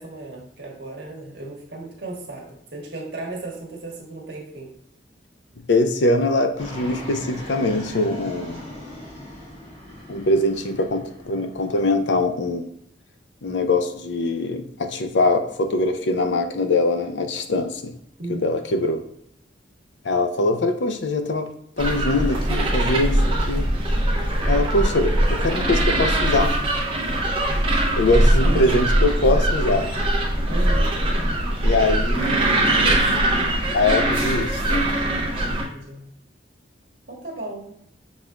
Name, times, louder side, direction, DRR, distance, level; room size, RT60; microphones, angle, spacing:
voice 1, 0.0-4.7 18.2-18.5 28.4-28.7 30.5-30.9 32.1-33.1 35.5-36.1 37.1-37.8, right 2 dB, 65° right, -1 dB, 1.3 m, -35 dB
voice 2, 5.7-8.6 10.1-12.7 13.4-18.0 18.3-19.0 20.0-21.5 21.8-23.7 24.5-26.6 28.0-29.9 31.6-32.9 33.7-34.9, left 2 dB, 80° left, 7 dB, 0.5 m, -22 dB
Fixed-wing aircraft airplane, 6.6-12.0, left 1 dB, 30° left, 1.3 m, -40 dB
sound 1, 21.8-35.6, right 1 dB, 30° right, 0.9 m, -21 dB
6.1 x 3.7 x 2.3 m, 0.75 s
head